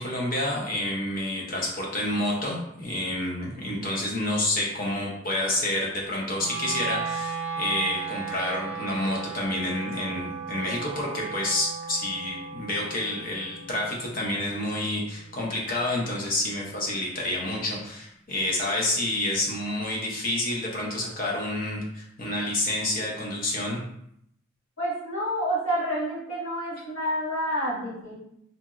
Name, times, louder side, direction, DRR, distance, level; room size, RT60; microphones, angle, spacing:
voice 1, 0.0-23.8, left 1 dB, 40° left, -2 dB, 0.6 m, -29 dB
Wind instrument woodwind instrument, 6.4-16.5, right 5 dB, 60° right, 0.5 m, -36 dB
voice 2, 24.8-28.1, equal, 70° left, -8 dB, 1.3 m, -28 dB
2.8 x 2.6 x 2.4 m, 0.75 s
head